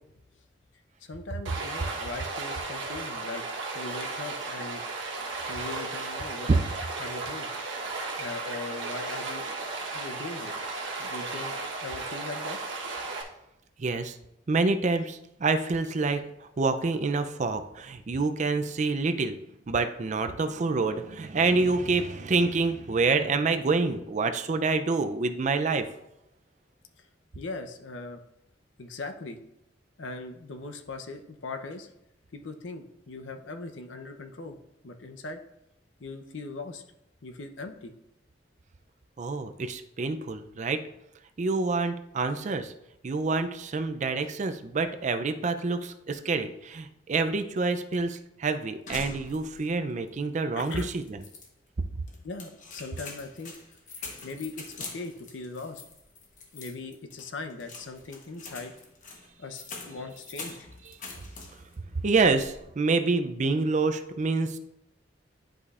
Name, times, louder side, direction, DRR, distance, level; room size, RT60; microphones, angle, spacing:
voice 1, 1.0-3.4 3.7-4.8 5.5-6.5 7.0-7.5 8.2-10.5 11.0-11.5 11.8-12.6 27.3-28.2 28.8-29.4 30.0-31.9 32.3-34.6 34.8-35.4 36.0-36.8 37.2-37.9 50.6-50.9 52.2-53.5 54.2-55.8 56.5-58.7 59.4-60.7, left 3 dB, 80° left, 5 dB, 0.7 m, -39 dB
Stream, 1.5-13.2, right 3 dB, 85° right, 1.1 m, -35 dB
voice 2, 13.8-14.2 14.5-19.4 19.7-25.9 39.2-40.8 41.4-42.7 43.0-51.2 62.0-64.6, right 3 dB, 40° right, 8 dB, 0.4 m, -27 dB
sound 1, 48.9-49.8 50.1-50.2 50.6-51.5 52.1-61.8 62.1-62.6, left 3 dB, 45° left, 1.1 m, -44 dB
10.5 x 5.0 x 2.4 m, 0.82 s
head